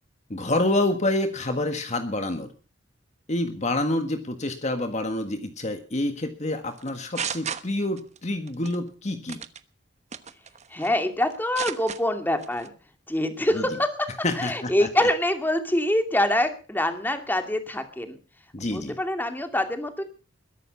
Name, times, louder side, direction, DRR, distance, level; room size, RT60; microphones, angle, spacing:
voice 1, 0.3-2.5 3.3-9.4 13.5-13.6 14.2-14.9 18.5-19.0, left 1 dB, 40° left, 7 dB, 1.6 m, -27 dB
sound 1, 6.8-8.2 8.5-8.8 9.3-9.6 10.1-11.0 11.3-12.0 12.4-12.7, right 7 dB, 40° right, 1.2 m, -33 dB
voice 2, 10.7-12.7 13.1-14.1 14.4-18.2 18.7-20.0, left 1 dB, 10° left, 7 dB, 2.4 m, -25 dB
21.5 x 11.0 x 5.7 m, 0.38 s
head